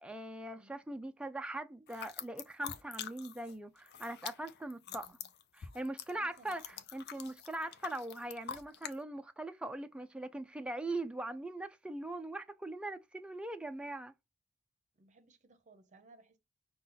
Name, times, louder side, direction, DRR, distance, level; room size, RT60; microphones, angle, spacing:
voice 1, 0.0-5.2 5.5-14.1, right 2 dB, 5° right, 0.3 m, -41 dB
sound 1, 1.9-3.5 3.8-9.0, left 8 dB, 55° left, 0.5 m, -45 dB
voice 2, 4.9-5.3 6.1-6.8 14.9-16.4, right 3 dB, 35° right, 0.7 m, -62 dB
5.4 x 2.3 x 3.9 m
head